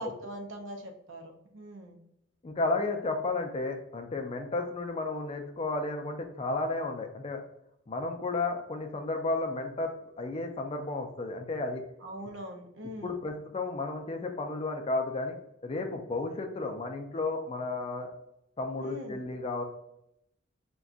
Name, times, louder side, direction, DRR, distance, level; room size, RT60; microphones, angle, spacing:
voice 1, 0.0-2.0 12.0-13.2 18.8-19.3, right 1 dB, 75° right, 4 dB, 0.6 m, -42 dB
voice 2, 2.4-7.4 7.9-9.9 10.2-11.8 13.0-15.4 15.6-18.1 18.6-19.6, left 3 dB, 30° left, 5 dB, 0.4 m, -33 dB
2.4 x 2.2 x 3.7 m, 0.79 s
head